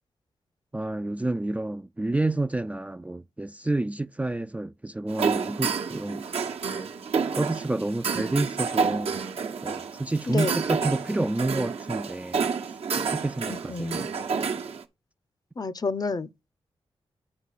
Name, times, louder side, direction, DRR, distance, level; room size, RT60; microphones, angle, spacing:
voice 1, 0.7-6.3 7.3-9.2 9.6-12.5 13.0-14.1, right 2 dB, 15° right, 0.4 m, -29 dB
sound 1, 5.1-14.8, right 5 dB, 70° right, 1.0 m, -29 dB
voice 2, 13.5-14.1 15.6-16.3, left 4 dB, 40° left, 0.6 m, -29 dB
9.7 x 4.5 x 4.1 m
cardioid pair, 45°, 10 cm